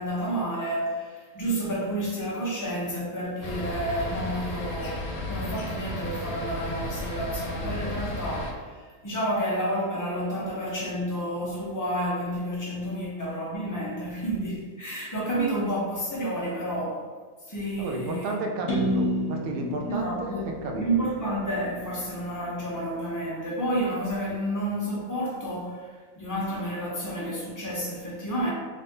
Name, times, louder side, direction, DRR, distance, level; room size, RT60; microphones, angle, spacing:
voice 1, 0.0-17.0 17.5-18.4 19.9-28.5, right 1 dB, 30° left, -5 dB, 0.4 m, -30 dB
sound 1, 3.4-8.5, left 2 dB, 85° left, 1.1 m, -33 dB
voice 2, 17.8-21.0, right 2 dB, 75° right, 2 dB, 0.5 m, -32 dB
sound 2, 18.7-22.5, equal, 60° left, 1.1 m, -31 dB
3.0 x 2.6 x 3.4 m, 1.5 s
omnidirectional pair, 1.5 m